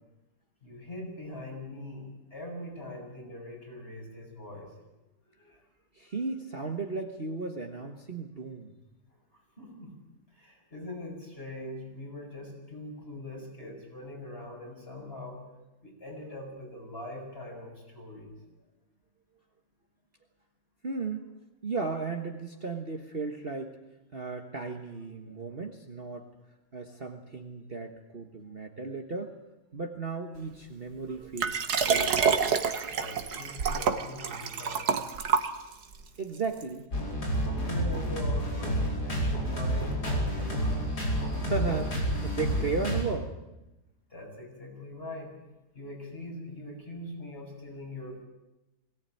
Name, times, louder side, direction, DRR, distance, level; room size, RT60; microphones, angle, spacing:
voice 1, 0.6-4.7 5.3-5.6 9.6-10.0 10.3-15.4 15.8-18.3 32.9-34.9 37.6-40.9 44.1-45.3 45.7-48.2, left 1 dB, 35° left, -1 dB, 7.5 m, -42 dB
voice 2, 5.9-8.7 20.8-21.2 21.6-23.8 24.1-26.3 26.7-29.3 29.7-32.3 36.2-36.9 41.5-43.3, right 4 dB, 35° right, 3 dB, 1.6 m, -35 dB
Liquid, 31.4-36.0 36.6-36.7, right 6 dB, 70° right, 1.9 m, -27 dB
sound 1, 36.9-43.0, equal, 70° left, 5.5 m, -29 dB
22.0 x 18.0 x 9.3 m, 0.98 s
omnidirectional pair, 1.8 m